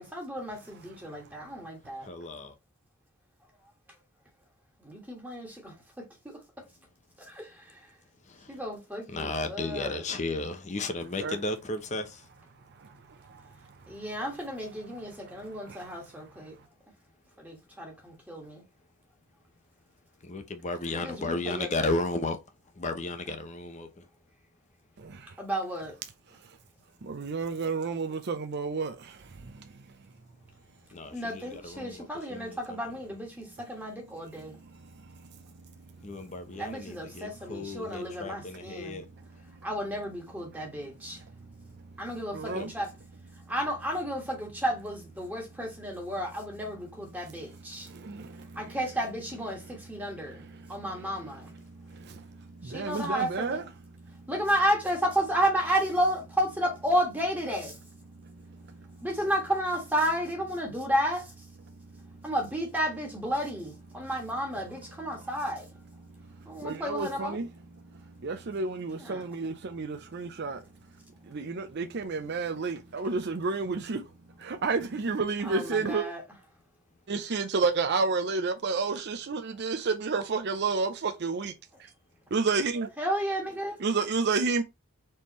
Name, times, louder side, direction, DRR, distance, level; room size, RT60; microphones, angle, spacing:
voice 1, 0.0-2.1 4.8-6.4 7.2-7.9 8.5-10.0 13.9-16.6 17.4-18.6 20.9-22.0 25.4-26.0 31.1-34.6 36.5-39.0 39.6-41.2 42.0-42.9 43.5-47.9 48.5-50.4 50.7-51.5 52.6-53.6 54.3-57.8 59.0-61.4 62.2-65.7 66.4-67.4 69.0-69.2 75.4-76.2 83.0-83.8, equal, 10° right, 1.4 m, -32 dB
voice 2, 2.0-2.5 8.3-8.5 9.1-12.2 20.2-22.4 22.8-24.1 30.9-31.2 31.5-32.6 36.0-39.1 42.5-42.7, left 2 dB, 30° left, 0.7 m, -34 dB
voice 3, 12.8-14.0 15.3-15.4 15.7-15.8 25.0-25.4 26.4-26.5 27.0-29.8 34.6-35.3 36.5-36.6 39.3-39.4 41.1-41.2 41.6-42.0 42.3-42.7 43.3-43.5 47.7-48.8 50.3-51.2 51.6-53.6 53.9-54.3 58.1-59.1 61.7-62.3 64.0-64.1 66.0-67.5 67.8-70.6 71.2-74.1 74.4-76.1 77.1-81.5 81.8-81.9 82.3-82.9 83.8-84.6, right 4 dB, 50° right, 0.5 m, -32 dB
4.3 x 3.6 x 3.0 m
head